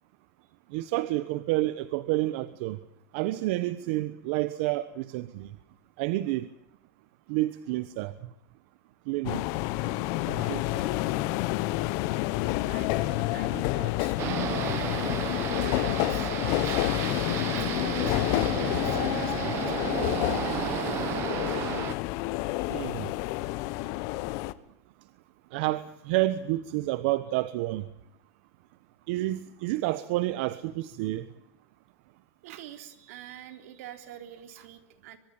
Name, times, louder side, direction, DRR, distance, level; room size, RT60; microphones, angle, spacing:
voice 1, 0.7-2.8 3.1-5.6 6.0-6.5 7.3-8.1 9.1-9.4 10.3-10.8 22.7-23.2 25.5-27.9 29.1-31.3, right 17 dB, 55° right, 1.2 m, -29 dB
sound 1, 9.3-24.5, left 18 dB, 45° left, 1.2 m, -29 dB
voice 2, 9.8-11.1 11.7-12.0 12.7-14.2 15.6-16.8 17.5-20.1 22.4-22.7 32.4-35.2, right 10 dB, 75° right, 3.8 m, -46 dB
sound 2, 14.2-21.9, right 13 dB, 35° right, 1.3 m, -33 dB
24.0 x 21.0 x 8.9 m
supercardioid pair, 175°, 8 cm